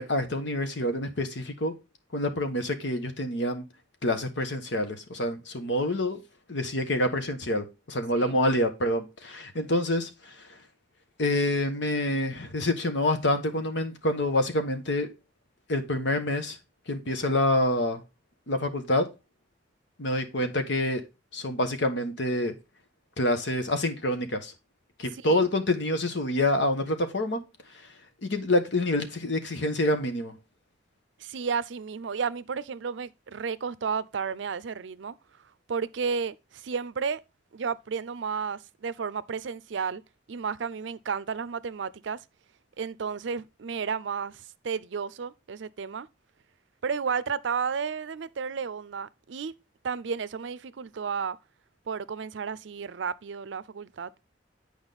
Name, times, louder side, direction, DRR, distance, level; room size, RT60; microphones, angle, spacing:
voice 1, 0.0-1.7 2.1-3.6 4.0-6.2 6.5-10.5 11.2-15.1 15.7-16.6 16.9-18.0 18.5-19.1 20.0-21.0 21.3-22.6 23.2-24.5 25.0-27.4 28.2-30.4, left 1 dB, 70° left, 1.3 m, -27 dB
voice 2, 31.2-35.2 35.7-37.2 37.5-40.0 40.3-42.2 42.8-46.1 46.8-49.5 49.8-51.4 51.9-54.1, right 6 dB, 75° right, 0.5 m, -32 dB
8.9 x 5.0 x 3.9 m
head